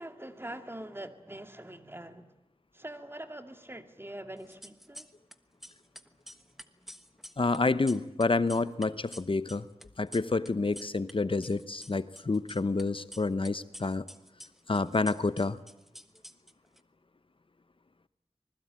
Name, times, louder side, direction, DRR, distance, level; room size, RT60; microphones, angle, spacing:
voice 1, 0.0-2.3 2.7-5.1, right 1 dB, 20° right, 7 dB, 2.3 m, -43 dB
sound 1, 4.4-5.4 5.6-11.1 11.4-12.8 13.1-16.8, equal, ahead, 1.3 m, -49 dB
voice 2, 7.4-9.7 10.0-14.1 14.7-15.6, left 3 dB, 55° left, 14 dB, 0.9 m, -28 dB
25.5 x 20.5 x 8.8 m, 0.88 s
wide cardioid pair, 50°, 10 cm